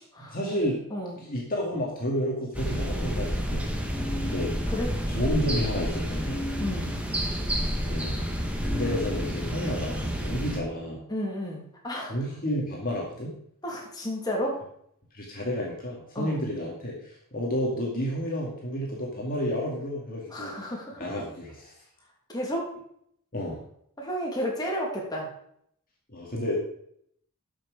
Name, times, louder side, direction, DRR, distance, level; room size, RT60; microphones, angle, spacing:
voice 1, 0.2-0.8 1.2-3.7 4.2-4.6 5.1-6.5 7.8-8.2 8.6-11.0 12.1-13.3 15.1-20.7 21.0-21.7 23.3-23.6 26.1-26.5, equal, 40° left, -3 dB, 2.2 m, -31 dB
sound 1, 2.5-10.6, equal, 5° right, 1.4 m, -29 dB
voice 2, 6.6-7.0 11.1-12.1 13.6-14.6 16.1-16.4 20.3-21.3 22.3-22.7 24.0-25.3, equal, 20° left, -2 dB, 2.8 m, -32 dB
13.0 x 6.3 x 5.0 m, 0.69 s
head